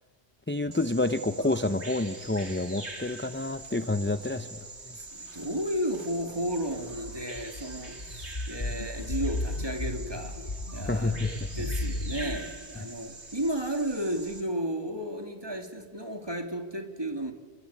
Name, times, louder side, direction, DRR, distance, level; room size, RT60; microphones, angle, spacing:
voice 1, 0.5-4.7 10.9-11.5, left 2 dB, 10° left, 0.7 m, -29 dB
Bird vocalization bird call bird song, 0.7-14.4, right 2 dB, 80° right, 3.5 m, -44 dB
voice 2, 4.9-10.4 10.7-11.2 11.6-17.3, right 1 dB, 20° right, 2.8 m, -33 dB
sound 1, 6.6-12.4, left 2 dB, 45° left, 1.9 m, -35 dB
29.5 x 23.0 x 8.5 m
omnidirectional pair, 1.1 m